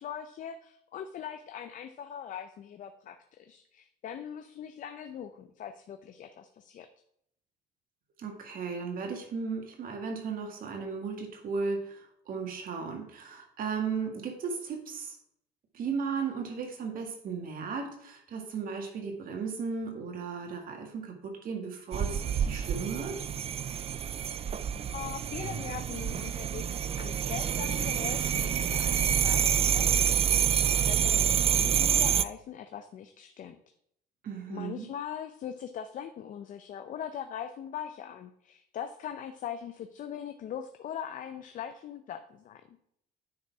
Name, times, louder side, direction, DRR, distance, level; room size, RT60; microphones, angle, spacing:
voice 1, 0.0-6.9 24.9-33.6 34.5-42.8, left 9 dB, 50° left, 8 dB, 0.5 m, -41 dB
voice 2, 8.2-15.2 15.7-23.2 34.2-34.9, right 5 dB, 55° right, 3 dB, 1.9 m, -35 dB
sound 1, 21.9-32.2, right 8 dB, 35° right, 0.4 m, -27 dB
9.6 x 4.0 x 4.7 m, 0.73 s
cardioid pair, 110°, 17 cm